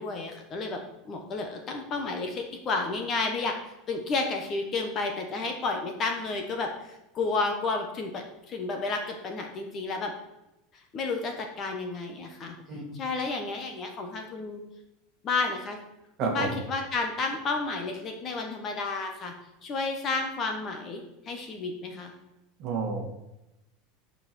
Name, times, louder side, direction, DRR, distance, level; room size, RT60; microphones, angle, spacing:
voice 1, 0.0-3.6 3.9-10.1 10.7-12.5 12.9-14.6 15.2-15.8 16.2-19.3 19.6-22.1, left 3 dB, 25° left, 4 dB, 1.1 m, -31 dB
voice 2, 16.2-16.6 22.6-23.1, right 4 dB, 35° right, 2 dB, 1.9 m, -30 dB
11.5 x 5.6 x 6.1 m, 0.92 s
supercardioid pair, 180°, 0 cm